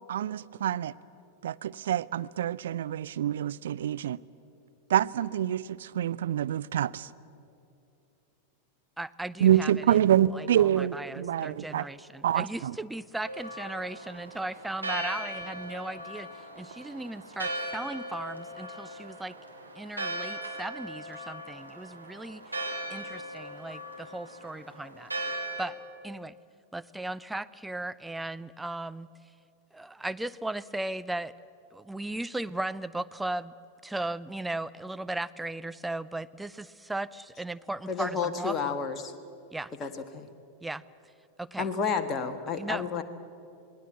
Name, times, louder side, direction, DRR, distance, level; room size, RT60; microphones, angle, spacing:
voice 1, 0.1-0.9 1.4-4.2 4.9-7.1 9.4-11.9 12.2-12.7, right 11 dB, 60° right, 16 dB, 0.5 m, -26 dB
voice 2, 9.0-16.3 16.6-19.3 19.8-22.4 22.9-25.7 26.0-26.3 26.7-29.1 29.7-31.3 31.7-33.5 33.8-38.6 39.5-39.7 40.6-40.8 41.4-41.7 42.6-42.8, right 2 dB, 5° right, 14 dB, 0.6 m, -37 dB
Church bell, 13.2-25.6, right 1 dB, 85° right, 2.8 m, -38 dB
voice 3, 37.9-39.1 39.8-40.3 41.6-43.0, left 5 dB, 25° left, 7 dB, 1.6 m, -31 dB
27.5 x 19.5 x 8.0 m, 2.8 s
figure-of-eight pair, 90°, 0 cm